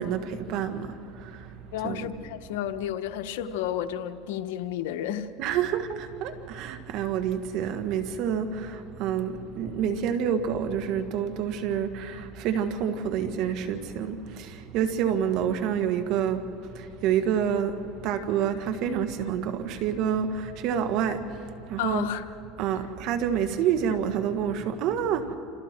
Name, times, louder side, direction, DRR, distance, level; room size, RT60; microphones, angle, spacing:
voice 1, 0.0-2.2 5.4-22.1 22.6-25.4, right 8 dB, 60° right, 8 dB, 1.8 m, -28 dB
voice 2, 1.7-5.6 21.8-22.2, left 10 dB, 85° left, 9 dB, 1.1 m, -32 dB
28.5 x 27.5 x 4.6 m, 2.7 s
supercardioid pair, 115°, 0 cm